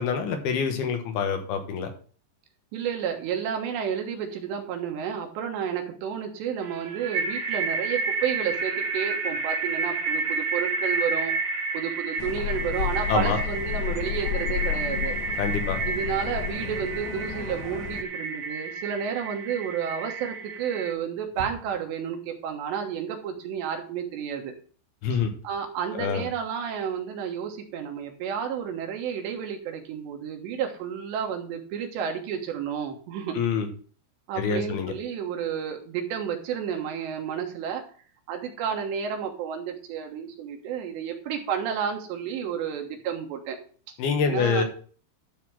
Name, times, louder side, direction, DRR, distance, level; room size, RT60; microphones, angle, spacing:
voice 1, 0.0-1.9 13.1-13.4 15.4-15.8 25.0-25.3 25.9-26.3 33.4-33.7 34.4-34.9 44.0-44.6, left 5 dB, 70° left, 6 dB, 2.8 m, -26 dB
voice 2, 2.7-11.3 11.7-15.2 15.9-24.5 25.1-25.2 25.4-33.4 34.3-37.8 38.3-43.6 44.2-44.6, right 8 dB, 75° right, 3 dB, 3.4 m, -31 dB
sound 1, 6.6-20.9, right 4 dB, 50° right, 2.3 m, -31 dB
sound 2, 12.2-18.0, left 10 dB, 85° left, 2.4 m, -32 dB
sound 3, 21.3-22.0 23.8-23.9 24.3-24.4 25.1-28.7, right 1 dB, 25° left, 1.5 m, -47 dB
12.0 x 4.2 x 6.1 m, 0.42 s
omnidirectional pair, 5.2 m